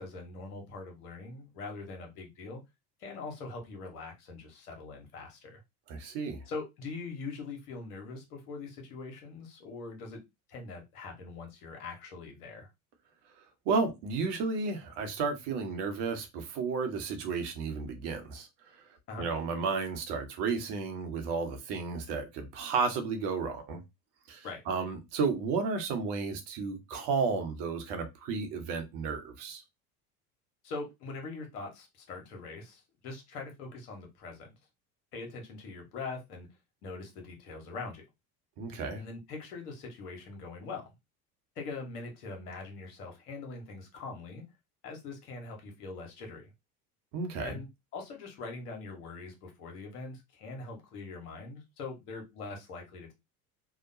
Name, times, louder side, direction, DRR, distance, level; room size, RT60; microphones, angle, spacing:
voice 1, 0.0-2.6 3.0-5.6 6.5-10.2 10.5-12.7 19.1-19.3 24.4-24.6 30.6-34.5 35.1-36.5 36.8-38.0 39.0-40.9 41.6-44.4 44.8-46.5 47.4-53.1, left 3 dB, 75° left, 1.2 m, -42 dB
voice 2, 5.9-6.4 13.7-18.5 19.2-23.8 24.3-29.6 38.6-39.0 47.1-47.6, right 4 dB, 60° right, 1.0 m, -32 dB
2.9 x 2.2 x 2.6 m
hypercardioid pair, 70°, 46 cm